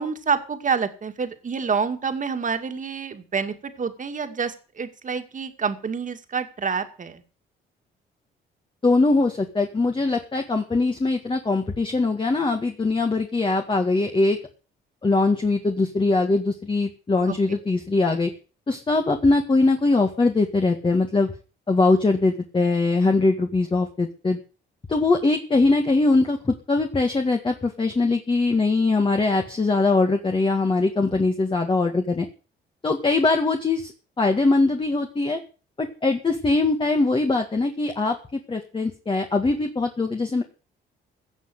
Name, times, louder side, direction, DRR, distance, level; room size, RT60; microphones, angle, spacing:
voice 1, 0.0-7.2 17.3-17.4, right 5 dB, 40° right, 7 dB, 2.2 m, -27 dB
voice 2, 8.8-14.4 15.0-18.3 18.7-21.3 21.7-24.4 24.9-32.3 32.8-33.9 34.2-35.4 35.8-40.4, left 3 dB, 25° left, 4 dB, 1.9 m, -22 dB
16.5 x 6.3 x 8.0 m, 0.37 s
cardioid pair, 90°, 20 cm